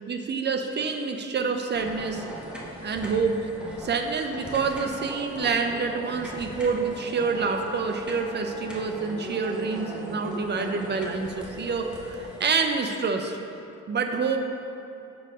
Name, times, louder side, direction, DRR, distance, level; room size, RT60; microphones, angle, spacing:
voice 1, 0.1-2.2 2.8-3.4 3.8-13.4 13.9-14.4, right 5 dB, 35° right, 5 dB, 0.6 m, -27 dB
sound 1, 1.7-12.4, equal, 5° right, 0.9 m, -39 dB
6.8 x 4.6 x 3.6 m, 2.7 s
cardioid pair, 90°, 30 cm